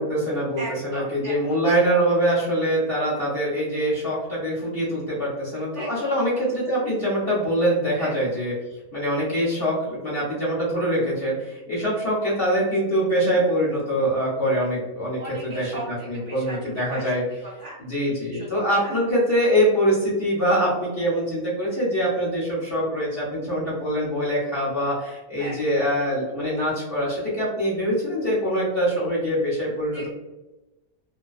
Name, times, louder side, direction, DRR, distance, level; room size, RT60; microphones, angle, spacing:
voice 1, 0.0-8.5 8.9-17.2 17.8-30.1, equal, 45° left, -7 dB, 0.9 m, -24 dB
voice 2, 0.6-1.6 5.7-6.1 8.0-8.1 15.2-18.5 18.8-18.9 25.4-25.6 29.9-30.1, right 1 dB, 60° right, -6 dB, 0.9 m, -38 dB
2.5 x 2.2 x 2.3 m, 1.1 s
omnidirectional pair, 1.6 m